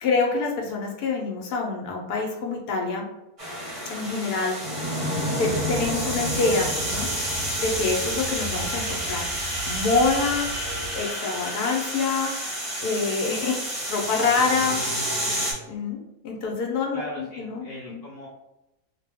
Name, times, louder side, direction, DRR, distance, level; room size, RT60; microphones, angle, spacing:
voice 1, 0.0-3.1 3.9-4.9 5.4-7.1 7.6-9.3 9.6-10.5 10.9-12.3 12.8-13.6 13.9-14.8 15.7-18.0, left 4 dB, 80° left, 0 dB, 1.1 m, -26 dB
sound 1, 3.4-15.5, equal, 25° right, 0.8 m, -29 dB
sound 2, 5.4-11.0, right 2 dB, 70° right, 1.0 m, -38 dB
voice 2, 10.3-11.0 11.3-11.5 16.9-18.3, left 1 dB, 65° left, -5 dB, 0.6 m, -40 dB
2.6 x 2.2 x 3.3 m, 0.93 s
omnidirectional pair, 1.7 m